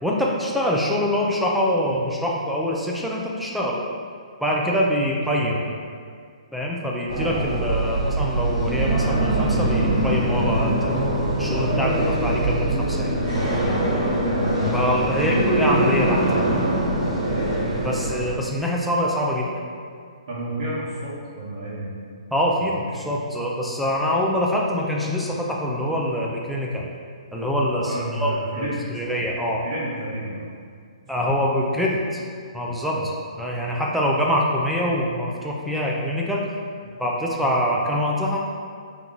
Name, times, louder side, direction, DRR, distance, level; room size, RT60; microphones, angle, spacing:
voice 1, 0.0-3.8 4.4-5.5 6.5-11.0 11.4-13.1 14.7-16.4 17.8-19.7 22.3-26.9 27.3-29.7 31.1-32.2 32.5-33.0 33.4-36.5 37.0-38.4, equal, ahead, -4 dB, 0.3 m, -24 dB
sound 1, 7.1-18.3, right 1 dB, 20° right, 1.2 m, -23 dB
voice 2, 15.1-15.7 20.3-21.9 22.6-23.0 27.9-28.8 29.6-30.5 31.2-31.3 32.9-33.1, right 1 dB, 55° right, -10 dB, 1.0 m, -31 dB
3.9 x 2.9 x 3.7 m, 2.1 s
hypercardioid pair, 165°, 4 cm